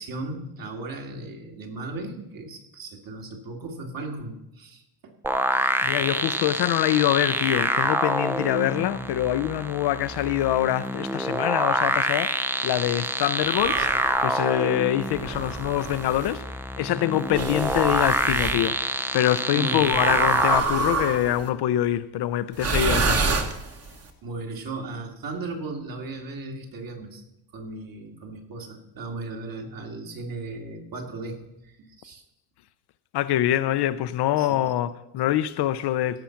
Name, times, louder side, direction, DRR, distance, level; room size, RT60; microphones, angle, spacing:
voice 1, 0.0-5.1 5.5-5.7 19.5-20.0 24.2-27.2 27.5-31.4 31.6-32.2 34.4-34.7, right 3 dB, 50° right, 2.1 m, -36 dB
sound 1, 5.2-20.6, right 1 dB, 5° right, 0.4 m, -26 dB
voice 2, 5.8-12.4 12.6-16.4 16.8-23.2 33.1-36.2, left 13 dB, 65° left, 0.6 m, -25 dB
sound 2, 13.5-14.2 15.1-16.3 17.3-18.6 19.9-21.4 22.5-24.0, right 4 dB, 35° right, 1.3 m, -27 dB
17.0 x 6.1 x 5.8 m
cardioid pair, 140°, 43 cm